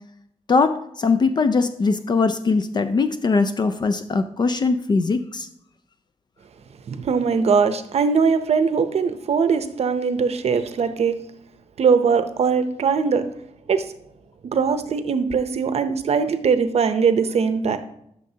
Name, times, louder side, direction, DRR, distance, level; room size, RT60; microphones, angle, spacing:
voice 1, 0.5-5.5, left 4 dB, 40° left, 8 dB, 0.4 m, -21 dB
voice 2, 6.9-11.2 11.8-13.2 13.7-13.8 14.4-17.8, right 5 dB, 65° right, 10 dB, 0.7 m, -21 dB
12.0 x 6.4 x 2.8 m, 0.74 s
wide cardioid pair, 145°, 12 cm